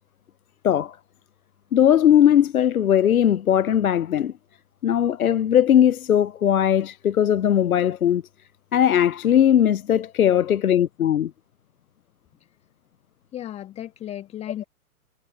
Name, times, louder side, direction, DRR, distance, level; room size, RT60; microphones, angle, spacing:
voice 1, 0.6-1.0 1.7-4.3 4.8-8.2 8.7-11.3, left 10 dB, 70° left, 0.6 m, -19 dB
voice 2, 13.3-14.6, left 12 dB, 15° left, 1.3 m, -35 dB
figure-of-eight pair, 115°, 45 cm